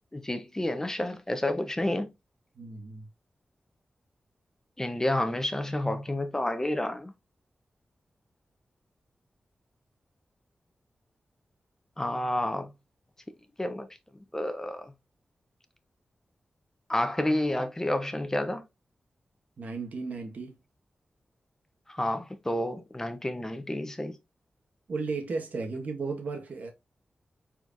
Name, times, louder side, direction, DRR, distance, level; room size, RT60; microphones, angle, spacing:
voice 1, 0.1-2.1 4.8-7.1 12.0-12.7 13.6-13.9 14.3-14.9 16.9-18.6 21.9-24.2, left 1 dB, 20° left, 0.9 m, -30 dB
voice 2, 2.6-3.1 19.6-20.6 24.9-26.7, right 4 dB, 75° right, 1.6 m, -34 dB
4.5 x 4.4 x 2.7 m
cardioid pair, 65°, 3 cm